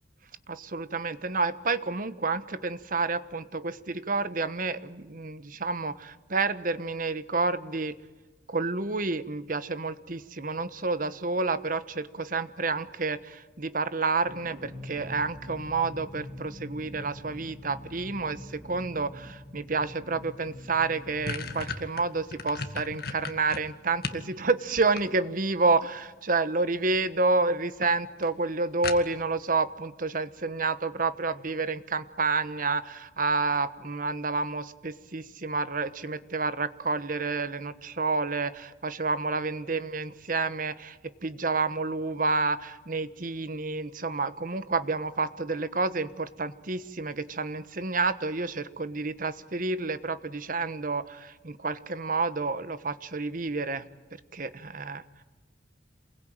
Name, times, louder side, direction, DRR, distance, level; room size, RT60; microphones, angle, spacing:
voice 1, 0.5-8.0 8.5-53.8 54.3-55.0, right 3 dB, 50° right, 13 dB, 1.2 m, -29 dB
sound 1, 14.3-22.9, left 1 dB, 5° right, 6.2 m, -45 dB
sound 2, 20.4-20.5 20.8-24.3 24.7-25.5 26.6-27.0 27.4-27.5 27.8-27.9 28.2-28.3 28.8-29.4, left 4 dB, 60° left, 2.0 m, -36 dB
28.0 x 21.5 x 9.0 m, 1.2 s
head